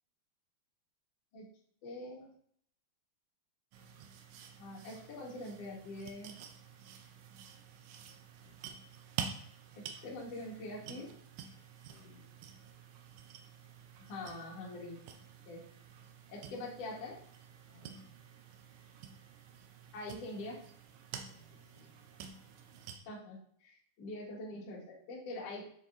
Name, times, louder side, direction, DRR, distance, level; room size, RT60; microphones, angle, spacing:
voice 1, 1.8-2.3 4.6-6.4 9.7-11.1 14.1-15.0 15.5-15.6 16.3-17.2 19.9-20.6 23.1-23.4 23.6-25.6, left 2 dB, 50° left, -4 dB, 2.1 m, -44 dB
sound 1, 3.7-23.0, right 8 dB, 85° right, 1.9 m, -49 dB
voice 2, 11.9-12.3 17.7-18.1 21.2-22.2 24.5-24.8 25.4-25.6, left 4 dB, 70° left, -4 dB, 2.3 m, -62 dB
7.2 x 3.9 x 3.8 m, 0.63 s
omnidirectional pair, 4.6 m